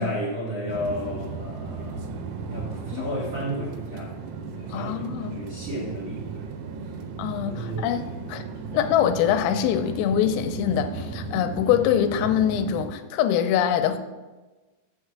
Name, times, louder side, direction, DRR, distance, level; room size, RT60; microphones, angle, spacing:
voice 1, 0.0-2.0 2.5-4.1 4.5-6.5 7.5-7.9 8.4-8.5, equal, 50° right, -6 dB, 1.9 m, -33 dB
sound 1, 0.7-12.9, right 4 dB, 85° right, 3.5 m, -35 dB
voice 2, 4.7-5.4 7.2-8.0 8.3-8.4 8.7-14.0, left 9 dB, 85° left, 8 dB, 3.3 m, -24 dB
7.4 x 6.5 x 5.9 m, 1.2 s
omnidirectional pair, 5.9 m